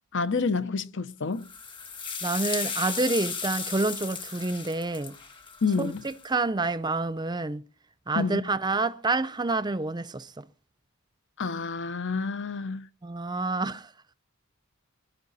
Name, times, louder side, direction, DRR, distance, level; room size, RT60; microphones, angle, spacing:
voice 1, 0.1-1.5 5.6-6.0 8.1-8.5 11.4-12.9, left 4 dB, 60° left, 1.0 m, -28 dB
sound 1, 1.4-6.3, left 5 dB, 25° left, 2.4 m, -35 dB
voice 2, 2.2-5.2 5.8-7.6 8.1-10.4 13.0-13.9, right 3 dB, 20° right, 0.7 m, -28 dB
22.5 x 11.5 x 4.2 m
head